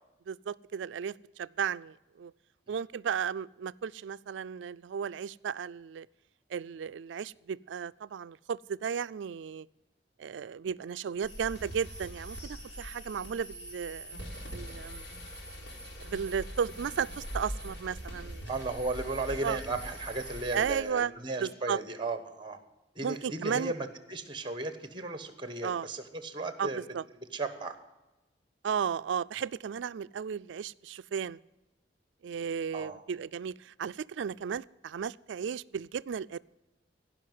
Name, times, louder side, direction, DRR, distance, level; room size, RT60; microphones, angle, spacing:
voice 1, 0.3-2.3 2.7-6.1 6.5-9.7 10.2-14.2 14.5-15.1 16.0-18.5 19.4-19.6 20.5-21.1 21.4-21.8 23.0-23.7 25.6-25.9 26.6-27.0 28.6-31.4 32.2-36.4, right 7 dB, 85° right, 17 dB, 0.4 m, -34 dB
sound 1, 11.2-20.8, equal, 75° left, 4.5 m, -42 dB
voice 2, 18.5-22.6 22.9-26.8 27.3-27.7 32.7-33.0, right 3 dB, 25° right, 10 dB, 1.2 m, -35 dB
16.0 x 5.7 x 9.4 m, 1.0 s
head